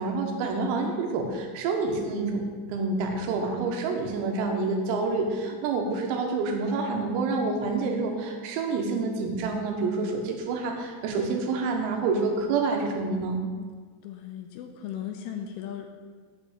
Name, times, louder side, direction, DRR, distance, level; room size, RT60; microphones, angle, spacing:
voice 1, 0.0-2.4 2.7-13.4, right 3 dB, 90° right, 3 dB, 4.0 m, -28 dB
voice 2, 14.0-15.9, left 9 dB, 80° left, 4 dB, 3.0 m, -37 dB
8.4 x 5.7 x 7.9 m, 1.5 s
omnidirectional pair, 6.0 m